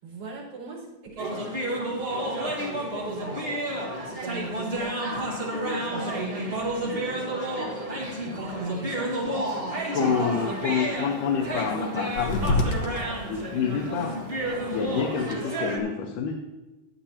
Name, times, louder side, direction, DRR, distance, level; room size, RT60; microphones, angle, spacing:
voice 1, 0.0-3.4 4.0-5.1 5.9-6.5 8.2-10.8 11.5-11.8 15.3-15.7, right 4 dB, 65° right, -6 dB, 5.7 m, -40 dB
sound 1, 1.2-15.8, right 1 dB, 25° right, 1.4 m, -31 dB
voice 2, 9.9-12.5 13.3-14.2 14.7-16.4, left 6 dB, 80° left, 1 dB, 2.5 m, -27 dB
sound 2, 10.1-15.3, left 2 dB, 60° left, 1.9 m, -33 dB
15.5 x 10.0 x 2.9 m, 1.1 s
omnidirectional pair, 3.6 m